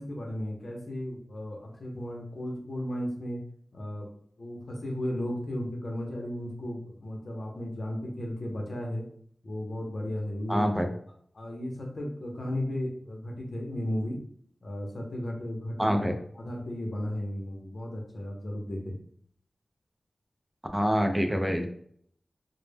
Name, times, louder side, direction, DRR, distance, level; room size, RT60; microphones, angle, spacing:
voice 1, 0.0-3.4 3.7-4.1 4.4-9.0 9.4-10.7 11.3-14.2 14.6-18.9, left 1 dB, 65° left, 0 dB, 0.5 m, -35 dB
voice 2, 10.5-10.9 15.8-16.1 20.7-21.7, equal, 5° right, 5 dB, 0.3 m, -25 dB
2.0 x 2.0 x 3.2 m, 0.63 s
wide cardioid pair, 75°, 0 cm